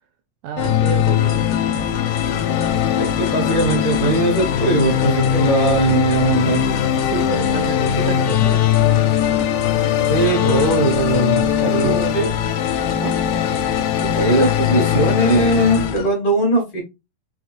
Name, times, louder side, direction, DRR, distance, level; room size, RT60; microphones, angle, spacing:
voice 1, 0.4-1.4 6.4-6.6 7.0-8.6 11.6-12.3 13.0-13.2, right 9 dB, 85° right, 1.8 m, -29 dB
sound 1, 0.6-15.9, left 10 dB, 80° left, 2.2 m, -20 dB
sound 2, 0.6-16.1, left 3 dB, 65° left, 1.8 m, -31 dB
sound 3, 1.6-10.9, equal, 25° left, 0.7 m, -40 dB
voice 2, 3.0-6.6 10.1-12.3 14.1-16.8, right 2 dB, 40° left, 1.4 m, -19 dB
5.6 x 3.0 x 2.4 m
omnidirectional pair, 3.9 m